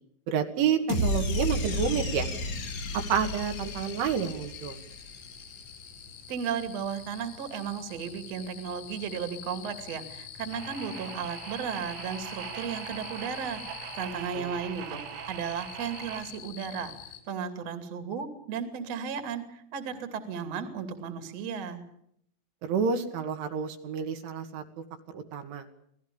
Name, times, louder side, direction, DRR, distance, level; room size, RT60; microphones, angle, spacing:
voice 1, 0.3-2.3 3.1-4.8 14.3-14.5 22.6-24.6 25.1-25.7, right 7 dB, 70° right, 5 dB, 4.0 m, -29 dB
sound 1, 0.9-5.2, left 1 dB, 40° left, 3.3 m, -32 dB
sound 2, 2.5-17.2, left 9 dB, 65° left, 9.1 m, -46 dB
voice 2, 6.3-16.9 17.3-21.8, right 7 dB, 40° right, 8 dB, 2.9 m, -35 dB
sound 3, 10.5-16.2, right 8 dB, 85° right, 5.8 m, -41 dB
27.5 x 18.5 x 7.0 m, 0.71 s
omnidirectional pair, 6.0 m